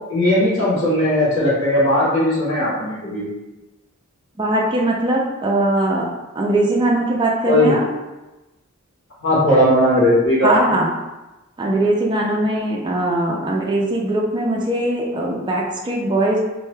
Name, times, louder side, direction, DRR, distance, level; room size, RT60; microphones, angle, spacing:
voice 1, 0.1-3.2 7.5-7.8 9.2-10.7, left 1 dB, 65° left, -7 dB, 1.2 m, -17 dB
voice 2, 4.4-6.1 6.4-7.8 10.4-10.9 11.6-16.4, right 1 dB, 20° right, -2 dB, 0.3 m, -20 dB
2.7 x 2.2 x 3.1 m, 1.1 s
head